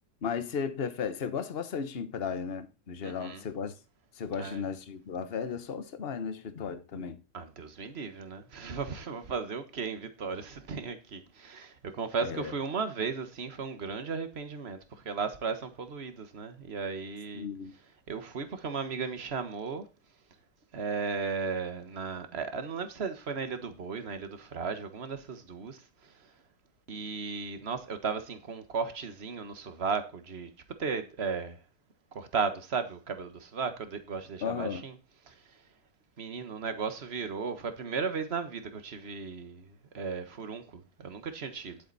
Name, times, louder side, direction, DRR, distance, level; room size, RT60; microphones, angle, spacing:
voice 1, 0.2-3.8 4.1-7.2 12.2-12.5 17.3-17.7 34.4-34.8, left 6 dB, 35° left, 1.1 m, -35 dB
voice 2, 3.0-3.4 4.4-4.6 7.3-17.5 18.1-19.8 20.7-26.1 26.9-30.5 30.8-31.6 32.1-34.9 35.3-35.4 36.2-41.8, right 5 dB, 35° right, 1.4 m, -35 dB
11.5 x 8.1 x 4.1 m
omnidirectional pair, 2.1 m